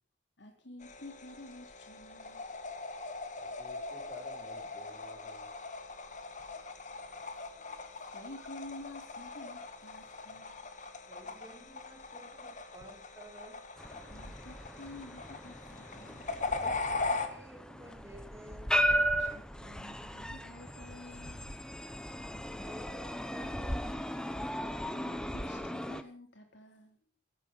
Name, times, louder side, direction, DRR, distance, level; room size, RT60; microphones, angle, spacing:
voice 1, 0.4-2.5 6.4-7.5 8.1-10.7 14.0-16.5 19.2-21.6 24.6-27.0, left 2 dB, 75° left, 4 dB, 3.6 m, -51 dB
sound 1, 0.8-17.3, left 3 dB, 40° left, 1.9 m, -41 dB
voice 2, 3.4-5.5 6.2-6.3 7.1-7.8, left 1 dB, 20° left, 0 dB, 7.2 m, -53 dB
voice 3, 11.1-13.7 16.6-18.8 22.1-24.1, right 1 dB, 15° right, 0 dB, 6.3 m, -53 dB
sound 2, 13.8-26.0, equal, 5° left, 1.0 m, -36 dB
16.5 x 13.5 x 5.4 m, 0.39 s
head